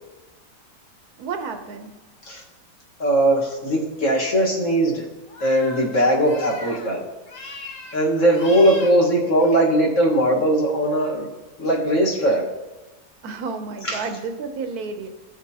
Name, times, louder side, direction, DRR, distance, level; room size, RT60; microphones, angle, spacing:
voice 1, 1.2-1.9 13.2-15.1, right 4 dB, 70° right, 6 dB, 1.2 m, -31 dB
voice 2, 3.0-5.0 5.4-7.1 7.9-11.3 11.6-12.4, right 1 dB, 50° left, -2 dB, 1.8 m, -19 dB
sound 1, 5.3-5.8 6.2-6.9 7.3-8.0 8.3-8.9 9.3-9.6 10.7-11.1, left 2 dB, 80° left, 1.8 m, -39 dB
14.5 x 6.0 x 2.8 m, 1.1 s
omnidirectional pair, 1.8 m